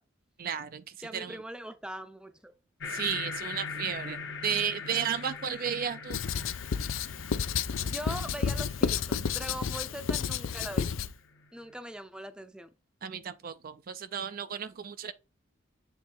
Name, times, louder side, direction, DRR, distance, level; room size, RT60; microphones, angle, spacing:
voice 1, 0.4-0.8 1.1-1.4 2.9-6.2 13.0-15.1, right 8 dB, 50° right, 0.4 m, -33 dB
voice 2, 1.0-2.5 7.8-10.9 11.5-12.7, equal, 5° right, 0.6 m, -41 dB
sound 1, 2.8-11.7, left 5 dB, 65° left, 1.0 m, -42 dB
Writing, 6.1-11.1, left 6 dB, 80° left, 0.5 m, -31 dB
7.5 x 3.2 x 4.2 m
head